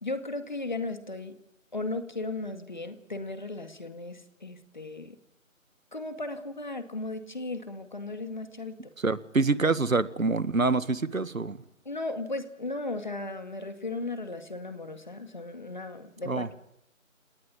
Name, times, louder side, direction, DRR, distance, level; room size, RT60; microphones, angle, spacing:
voice 1, 0.0-1.3 1.7-5.2 5.9-8.7 11.9-16.5, left 2 dB, 35° left, 9 dB, 2.1 m, -36 dB
voice 2, 9.0-11.6 16.3-16.5, right 3 dB, 75° right, 15 dB, 1.8 m, -26 dB
29.5 x 19.0 x 8.5 m, 0.77 s
figure-of-eight pair, 170°, 40 cm